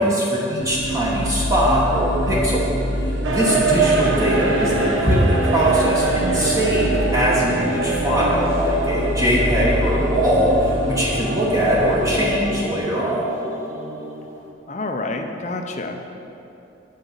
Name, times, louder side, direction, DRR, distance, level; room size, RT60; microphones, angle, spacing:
voice 1, 0.0-2.7 3.3-13.2, equal, 15° right, -5 dB, 1.1 m, -21 dB
sound 1, 0.6-12.4, equal, 70° right, 1.2 m, -26 dB
sound 2, 3.2-14.5, right 3 dB, 90° right, 1.0 m, -25 dB
voice 2, 14.7-16.2, left 2 dB, 35° left, 4 dB, 0.6 m, -28 dB
8.9 x 5.2 x 6.7 m, 2.8 s
head